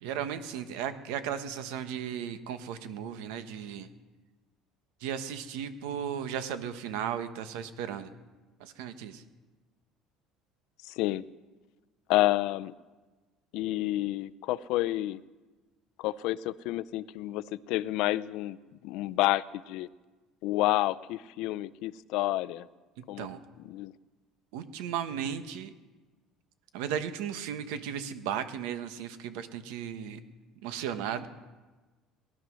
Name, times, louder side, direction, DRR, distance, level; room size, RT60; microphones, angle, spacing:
voice 1, 0.0-3.9 5.0-8.1 8.6-9.2 23.0-23.4 24.5-25.7 26.7-30.2 30.6-31.3, right 8 dB, 85° right, 10 dB, 1.2 m, -35 dB
voice 2, 10.8-11.3 12.1-12.7 13.5-15.2 16.0-18.6 18.8-19.9 20.4-22.7 23.1-23.3 23.7-23.9, left 16 dB, 65° left, 17 dB, 0.5 m, -29 dB
19.5 x 11.5 x 6.3 m, 1.3 s
cardioid pair, 150°, 0 cm